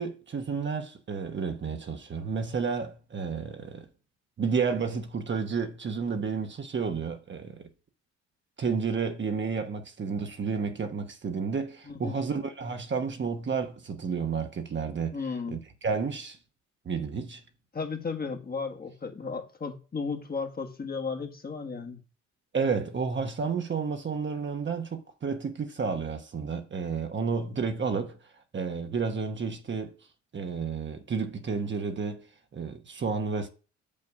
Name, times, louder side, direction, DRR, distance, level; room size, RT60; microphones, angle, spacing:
voice 1, 0.0-3.9 4.4-7.7 8.6-15.2 15.5-16.4 16.8-17.4 22.5-28.2 28.5-30.0 30.3-32.2 32.5-33.5, right 5 dB, 40° right, 1.1 m, -31 dB
voice 2, 11.8-12.2 15.1-15.6 17.7-22.0, left 4 dB, 30° left, 1.5 m, -34 dB
6.7 x 5.4 x 4.7 m
cardioid pair, 90°, 30 cm